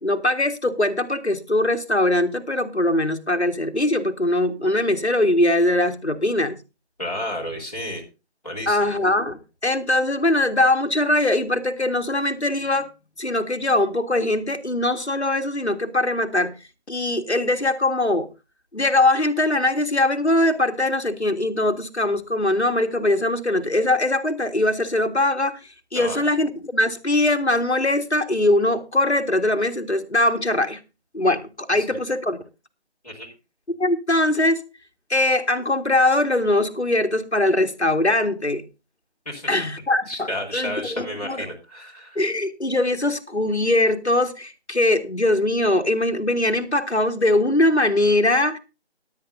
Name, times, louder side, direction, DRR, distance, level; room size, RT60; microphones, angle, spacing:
voice 1, 0.0-6.6 8.7-12.9 13.2-16.6 16.9-18.3 18.7-25.6 25.9-30.8 31.1-32.4 33.8-34.7 35.1-38.6 39.5-41.5 42.2-48.6, left 1 dB, 75° left, 1.8 m, -21 dB
voice 2, 7.0-8.0 8.4-8.9 25.9-26.2 31.8-32.0 33.0-33.3 39.3-39.6 40.1-42.2, left 1 dB, 35° left, 3.8 m, -32 dB
18.0 x 9.7 x 2.7 m
figure-of-eight pair, 175°, 33 cm